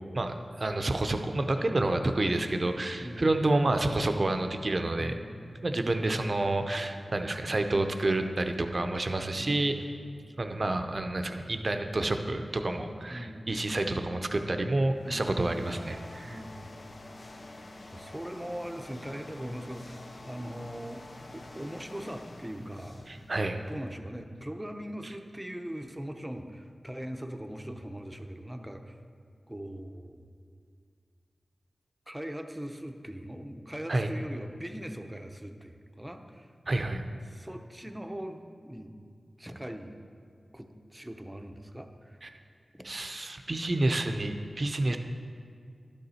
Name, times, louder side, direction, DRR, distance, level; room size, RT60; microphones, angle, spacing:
voice 1, 0.1-5.2 5.6-9.8 10.4-16.3 23.1-23.6 33.9-34.1 36.7-37.0 42.2-42.3 42.8-45.0, right 2 dB, 50° right, 6 dB, 0.7 m, -29 dB
voice 2, 3.0-3.5 5.0-5.6 9.4-9.8 13.1-13.5 15.0-15.7 16.2-16.7 17.2-17.3 17.9-21.0 21.3-23.0 23.7-29.0 29.5-30.2 32.1-36.5 37.2-38.9 39.4-40.0 40.5-42.2 42.7-42.8, equal, 10° right, 5 dB, 0.8 m, -41 dB
sound 1, 14.8-24.0, left 2 dB, 55° left, 0.7 m, -48 dB
12.0 x 6.7 x 4.3 m, 2.3 s
cardioid pair, 40°, 0 cm